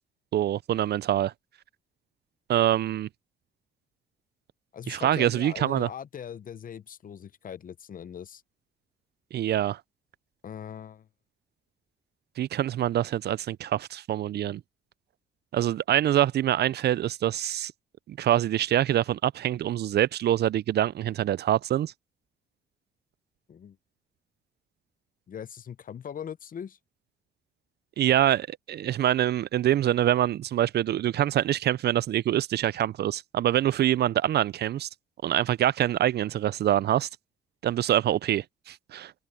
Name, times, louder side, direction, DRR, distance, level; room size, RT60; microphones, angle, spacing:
voice 1, 0.3-1.3 2.5-3.1 4.9-5.9 9.3-9.8 12.4-14.6 15.5-17.7 18.1-21.9 28.0-34.9 35.2-37.1 37.6-39.1, right 12 dB, 55° right, 0.4 m, -25 dB
voice 2, 4.7-8.4 10.4-11.1 23.5-23.8 25.3-26.8, left 8 dB, 45° left, 0.7 m, -40 dB
cardioid pair, 90°, 20 cm